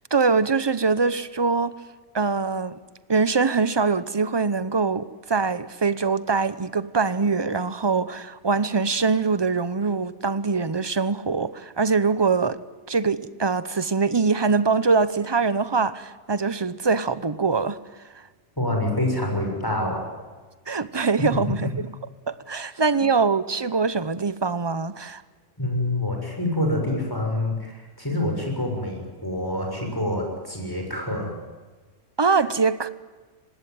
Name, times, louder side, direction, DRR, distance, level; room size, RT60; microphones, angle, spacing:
voice 1, 0.1-1.8 2.1-2.8 3.1-12.6 12.9-17.8 20.7-21.9 22.3-25.2 32.2-32.9, right 4 dB, 25° right, 0.8 m, -23 dB
voice 2, 18.6-20.0 21.3-21.4 25.6-31.3, left 1 dB, 15° left, 6.6 m, -26 dB
25.0 x 19.5 x 9.3 m
omnidirectional pair, 1.3 m